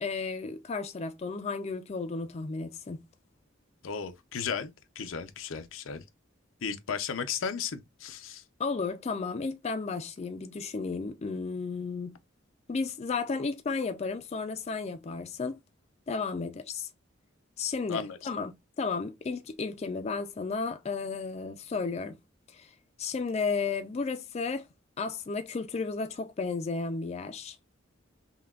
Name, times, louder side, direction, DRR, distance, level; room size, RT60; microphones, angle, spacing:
voice 1, 0.0-3.0 8.6-12.2 12.7-15.6 16.1-16.9 17.6-22.2 22.5-24.7 25.0-27.6, left 4 dB, 35° left, 0.3 m, -33 dB
voice 2, 3.8-6.0 6.6-8.4 17.9-18.2, left 6 dB, 85° left, 0.6 m, -35 dB
5.5 x 2.3 x 2.3 m
head